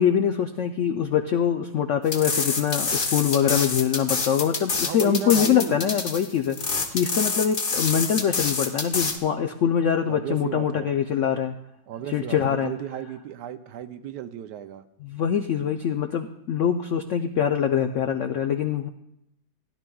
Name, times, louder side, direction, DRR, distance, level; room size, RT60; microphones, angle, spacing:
voice 1, 0.0-11.5 12.1-12.7 15.0-18.9, left 8 dB, 80° left, 7 dB, 0.6 m, -24 dB
sound 1, 2.1-9.2, left 4 dB, 40° left, 0.8 m, -27 dB
voice 2, 4.9-5.9 10.1-10.9 11.9-14.8, right 10 dB, 75° right, 10 dB, 1.2 m, -34 dB
16.5 x 11.0 x 2.3 m, 0.81 s
omnidirectional pair, 1.9 m